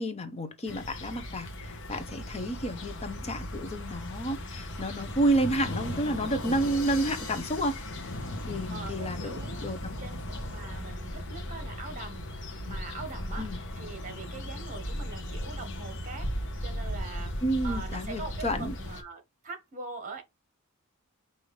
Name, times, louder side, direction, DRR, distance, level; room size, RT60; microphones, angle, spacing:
voice 1, 0.0-7.8 8.5-9.3 9.6-9.9 13.4-13.6 17.4-18.7, right 1 dB, 30° left, 0.7 m, -30 dB
sound 1, 0.7-19.0, left 1 dB, 55° left, 0.9 m, -37 dB
sound 2, 6.0-9.3, left 3 dB, 90° left, 1.4 m, -45 dB
voice 2, 8.4-9.6 10.0-17.3 17.6-20.2, right 3 dB, 35° right, 1.3 m, -43 dB
5.2 x 2.7 x 3.1 m
head